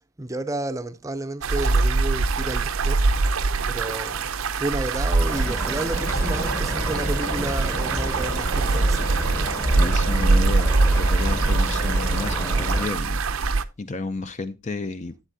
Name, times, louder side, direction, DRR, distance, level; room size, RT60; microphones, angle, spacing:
voice 1, 0.2-3.1 3.6-4.3 4.6-9.2, right 2 dB, 15° right, 0.6 m, -31 dB
sound 1, 1.4-13.6, right 3 dB, 70° right, 0.6 m, -23 dB
sound 2, 5.2-12.9, equal, 10° left, 1.0 m, -30 dB
sound 3, 5.9-12.2, left 2 dB, 80° left, 1.2 m, -39 dB
voice 2, 9.7-13.2 13.8-15.1, left 3 dB, 30° left, 0.5 m, -31 dB
11.5 x 8.4 x 2.7 m
head